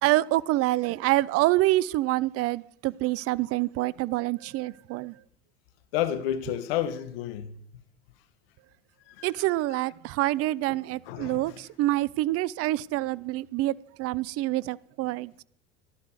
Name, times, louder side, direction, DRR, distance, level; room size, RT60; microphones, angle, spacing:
voice 1, 0.0-5.1 9.2-15.4, right 17 dB, 50° right, 0.6 m, -26 dB
voice 2, 5.9-7.5 9.2-9.3 11.1-11.4, left 11 dB, 75° left, 1.4 m, -30 dB
14.5 x 12.0 x 4.8 m
hypercardioid pair, 80°, 30 cm